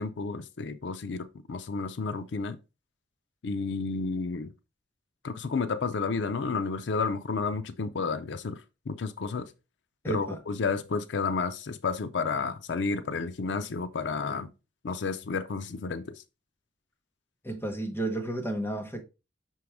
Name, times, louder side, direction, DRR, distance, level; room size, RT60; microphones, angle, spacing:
voice 1, 0.0-2.6 3.4-4.5 5.2-8.6 8.9-9.5 10.1-14.5 14.8-16.1, left 4 dB, 80° left, 0.5 m, -31 dB
voice 2, 10.0-10.4 17.4-19.0, right 2 dB, 10° left, 1.1 m, -32 dB
6.0 x 4.6 x 3.5 m
head